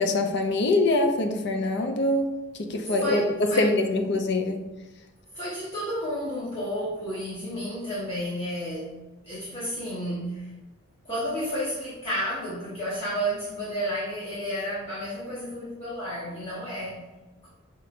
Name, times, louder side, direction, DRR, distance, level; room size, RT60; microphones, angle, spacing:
voice 1, 0.0-2.3 2.7-4.7, left 2 dB, 55° left, 4 dB, 0.5 m, -24 dB
voice 2, 3.0-3.7 5.3-9.0 9.2-10.5 11.0-17.5, equal, 30° left, -10 dB, 1.1 m, -32 dB
5.4 x 2.9 x 2.5 m, 1.1 s
head